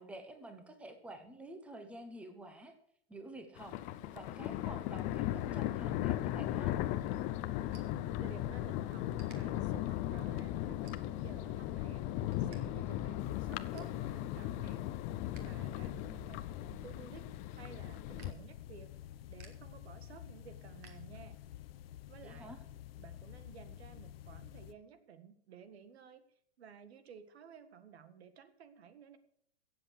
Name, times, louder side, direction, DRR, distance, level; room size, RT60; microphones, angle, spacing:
voice 1, 0.0-2.8 3.1-3.8 4.1-6.7 15.8-16.3 22.2-22.6, right 1 dB, 5° right, 6 dB, 1.1 m, -49 dB
Thunder, 3.6-18.3, left 13 dB, 25° left, 0.5 m, -37 dB
sound 1, 7.7-8.6 9.1-9.4 9.9-10.2 10.8-11.4 11.8-12.6 12.9-13.0 13.4-14.0 14.5-15.6 15.9-21.6, right 6 dB, 30° right, 2.2 m, -63 dB
voice 2, 8.0-12.0 12.4-14.8 15.4-18.9 19.3-21.4 22.1-22.5 23.0-26.2 26.6-29.2, right 7 dB, 80° right, 11 dB, 1.8 m, -54 dB
sound 2, 13.2-24.7, left 12 dB, 65° left, 0.9 m, -50 dB
16.0 x 7.8 x 6.5 m, 0.68 s
supercardioid pair, 155°, 32 cm